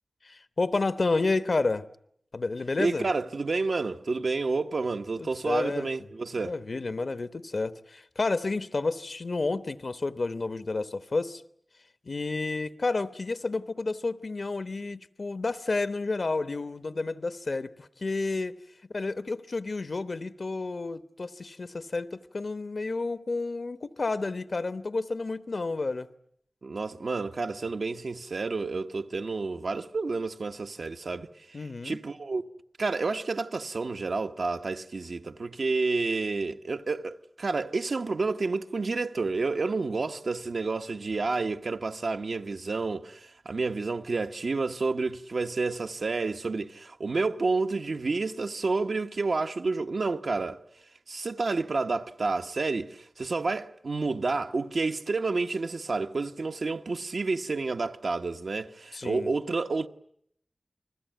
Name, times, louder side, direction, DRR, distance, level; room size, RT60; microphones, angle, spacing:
voice 1, 0.2-1.9 2.3-3.1 5.2-5.9 6.4-11.4 12.0-18.6 18.9-26.1 31.5-32.0 58.9-59.3, left 3 dB, 70° left, 1.0 m, -30 dB
voice 2, 2.8-6.5 26.6-32.4 32.8-50.6 51.1-59.9, right 3 dB, 85° right, 1.0 m, -30 dB
29.5 x 21.0 x 9.1 m
wide cardioid pair, 80°, 0 cm